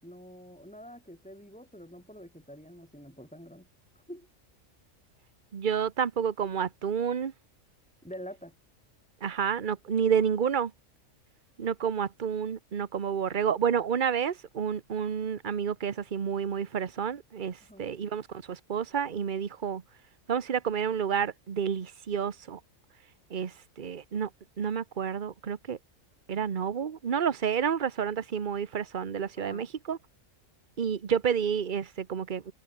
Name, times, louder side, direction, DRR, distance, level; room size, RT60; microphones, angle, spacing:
voice 1, 0.0-3.7 4.1-4.3 8.0-8.5 17.6-17.9 29.4-29.7, equal, 5° left, 7.2 m, -46 dB
voice 2, 5.5-7.3 9.2-10.7 11.6-19.8 20.3-22.6 23.3-24.3 24.6-25.8 26.3-30.0 30.8-32.5, right 7 dB, 40° right, 1.1 m, -30 dB
omnidirectional pair, 1.4 m